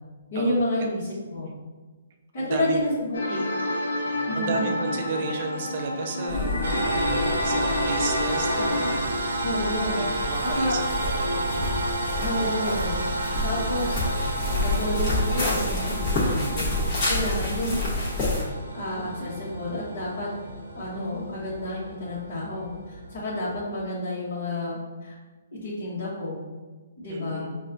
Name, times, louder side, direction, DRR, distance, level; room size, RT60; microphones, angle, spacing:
voice 1, 0.3-1.5 2.3-3.4 4.2-4.8 8.6-8.7 9.4-10.0 10.4-10.7 12.2-13.0 13.4-14.0 14.6-16.7 17.1-17.8 18.7-20.3 20.7-22.7 23.1-25.1 25.5-26.4 27.0-27.5, left 1 dB, 45° left, -10 dB, 1.1 m, -30 dB
voice 2, 2.4-2.9 3.2-3.3 3.6-9.1 9.9-11.8 27.1-27.6, right 3 dB, 40° right, 3 dB, 0.4 m, -34 dB
sound 1, 3.1-9.0, left 1 dB, 85° left, 0.7 m, -28 dB
sound 2, 6.3-18.4, left 2 dB, 25° left, 1.1 m, -29 dB
sound 3, 6.6-23.7, right 1 dB, 85° right, 0.6 m, -31 dB
5.4 x 2.3 x 2.6 m, 1.3 s
hypercardioid pair, 165°, 0 cm